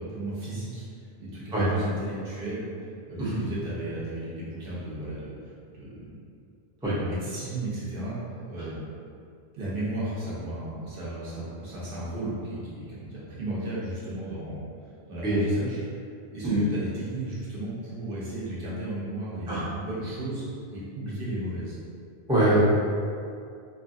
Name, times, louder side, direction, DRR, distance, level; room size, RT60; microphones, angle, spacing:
voice 1, 0.0-2.7 3.1-6.1 6.9-8.2 8.5-8.8 9.5-14.6 15.1-15.8 16.3-21.8, right 1 dB, 60° right, -8 dB, 0.9 m, -35 dB
voice 2, 22.3-22.6, right 1 dB, 5° right, -9 dB, 0.4 m, -23 dB
2.8 x 2.4 x 2.6 m, 2.4 s
omnidirectional pair, 1.1 m